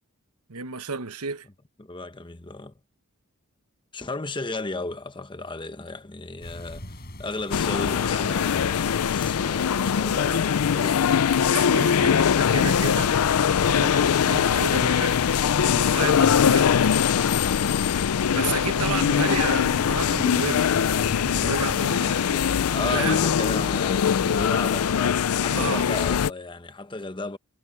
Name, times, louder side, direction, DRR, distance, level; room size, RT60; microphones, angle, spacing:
voice 1, 0.5-1.5 11.4-13.2 13.7-16.7 17.6-17.9 18.3-20.7 21.1-23.2 25.5-25.9, right 5 dB, 85° right, 1.2 m, -32 dB
voice 2, 1.8-2.7 3.9-11.3 22.7-27.4, left 3 dB, 20° left, 1.0 m, -34 dB
sound 1, 6.4-21.8, left 1 dB, 45° left, 7.6 m, -43 dB
sound 2, 7.5-26.3, left 7 dB, 80° left, 0.4 m, -22 dB
head